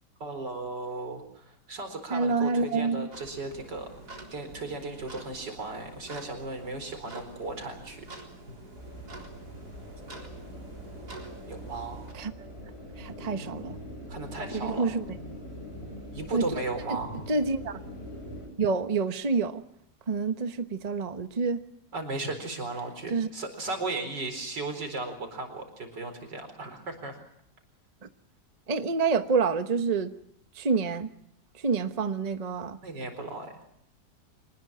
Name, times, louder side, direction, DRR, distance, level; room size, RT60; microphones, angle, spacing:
voice 1, 0.2-3.9 4.3-8.1 11.5-12.1 14.1-14.9 16.1-17.2 21.9-27.2 32.8-33.6, right 3 dB, 85° right, 7 dB, 5.1 m, -36 dB
voice 2, 2.1-3.1 12.1-12.5 13.0-13.7 14.6-15.0 16.3-16.4 17.3-17.8 18.6-19.6 20.1-21.6 23.1-23.3 28.0-28.1 28.7-30.1 30.5-31.1 31.6-32.8, right 4 dB, 25° right, 9 dB, 1.1 m, -27 dB
sound 1, 3.1-12.1, right 2 dB, 65° right, 4.5 m, -47 dB
sound 2, 8.7-18.5, equal, 35° left, 8.3 m, -42 dB
25.0 x 20.0 x 7.6 m, 0.70 s
omnidirectional pair, 1.8 m